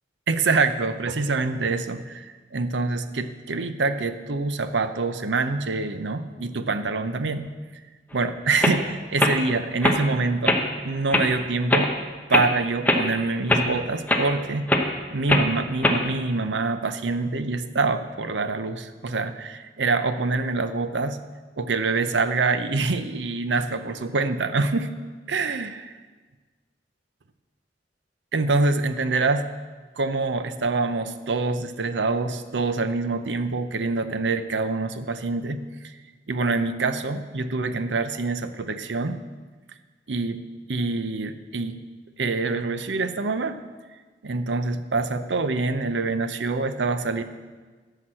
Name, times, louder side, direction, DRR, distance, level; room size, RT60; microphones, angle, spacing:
voice 1, 0.3-7.5 8.1-11.9 12.3-21.2 21.6-24.9 25.3-25.7 28.3-29.5 30.0-35.9 36.3-39.2 40.1-40.4 40.7-41.8 42.2-43.6 44.2-47.2, right 3 dB, 80° right, 10 dB, 0.7 m, -25 dB
sound 1, 8.1-8.2 8.6-8.8 9.2-9.4 9.8-10.0 10.4-10.6 11.1-11.3 11.7-11.9 12.3-12.5 12.8-13.0 13.5-13.7 14.1-14.2 14.7-14.9 15.3-15.5 15.8-16.0, left 1 dB, 10° left, 0.9 m, -20 dB
12.5 x 5.9 x 7.5 m, 1.4 s
head